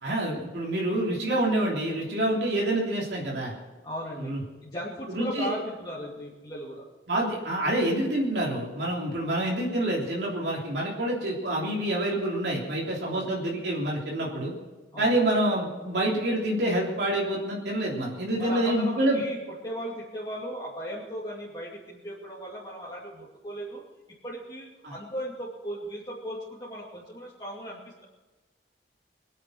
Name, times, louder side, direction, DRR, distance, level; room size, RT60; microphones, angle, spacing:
voice 1, 0.0-3.5 4.2-4.4 5.1-5.5 7.1-14.5 15.0-19.2 24.8-24.9, right 1 dB, 70° right, -4 dB, 3.3 m, -27 dB
voice 2, 3.8-6.9 13.0-13.4 14.9-15.2 18.4-23.8 24.2-28.0, equal, 25° left, -7 dB, 2.7 m, -37 dB
23.0 x 8.3 x 6.4 m, 1.2 s
head